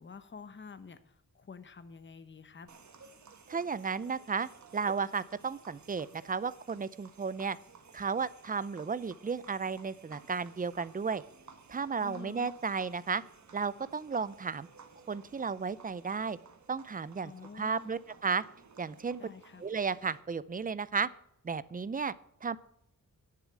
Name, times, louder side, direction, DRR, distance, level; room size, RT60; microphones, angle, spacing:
voice 1, 0.0-2.7 12.0-12.5 17.2-17.9 19.2-19.6, left 5 dB, 35° left, 11 dB, 0.9 m, -48 dB
sound 1, 2.7-20.2, right 5 dB, 55° right, 1.4 m, -57 dB
voice 2, 3.5-7.6 7.9-11.2 11.7-13.2 13.5-14.7 15.1-16.4 16.7-18.4 18.8-19.2 19.6-21.1 21.4-22.1 22.4-22.6, right 5 dB, 25° right, 17 dB, 0.5 m, -34 dB
10.5 x 7.2 x 8.2 m, 0.74 s
wide cardioid pair, 160°, 33 cm